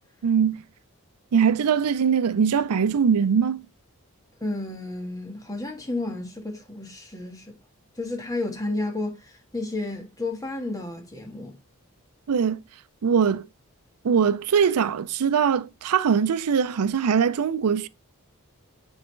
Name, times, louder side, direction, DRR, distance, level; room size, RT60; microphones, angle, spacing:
voice 1, 0.2-0.6 1.3-3.6 12.3-12.6 13.0-13.5 14.0-17.9, right 7 dB, 90° right, 0.4 m, -22 dB
voice 2, 4.4-7.5 8.0-11.5, left 2 dB, 15° left, 1.4 m, -32 dB
9.4 x 4.0 x 3.1 m
head